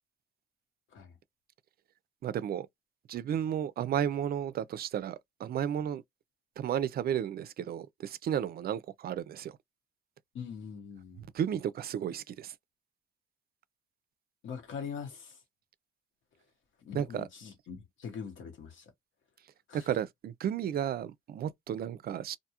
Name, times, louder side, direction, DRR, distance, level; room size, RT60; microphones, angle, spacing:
voice 1, 2.2-2.7 3.1-6.0 6.6-9.5 11.3-12.5 16.9-17.3 19.7-22.4, right 9 dB, 50° right, 0.4 m, -33 dB
voice 2, 10.3-11.3 14.4-15.4 16.8-18.8 19.7-19.9, left 6 dB, 75° left, 1.1 m, -42 dB
2.5 x 2.3 x 2.8 m
cardioid pair, 90°, 20 cm